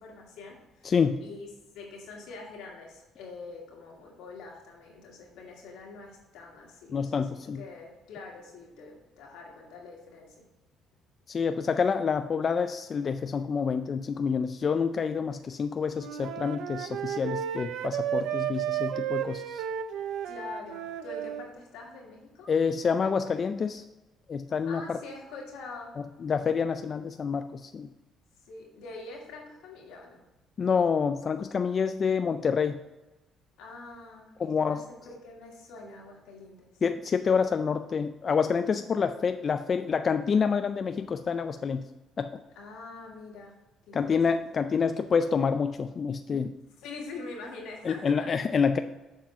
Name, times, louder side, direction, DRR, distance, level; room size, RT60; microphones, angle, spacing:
voice 1, 0.0-0.9 1.2-10.5 20.2-22.5 24.7-26.0 28.5-30.2 33.6-36.8 42.6-44.4 46.8-48.3, left 3 dB, 90° left, -2 dB, 2.3 m, -45 dB
voice 2, 0.8-1.2 6.9-7.6 11.3-19.6 22.5-23.8 24.3-25.0 26.2-27.9 30.6-32.8 34.4-34.8 36.8-41.8 42.2-42.3 43.9-46.5 47.8-48.8, left 6 dB, 45° left, 9 dB, 0.3 m, -27 dB
Wind instrument woodwind instrument, 15.9-21.5, right 10 dB, 80° right, 0.5 m, -33 dB
7.4 x 4.6 x 5.8 m, 1.1 s
cardioid pair, 95°, 0 cm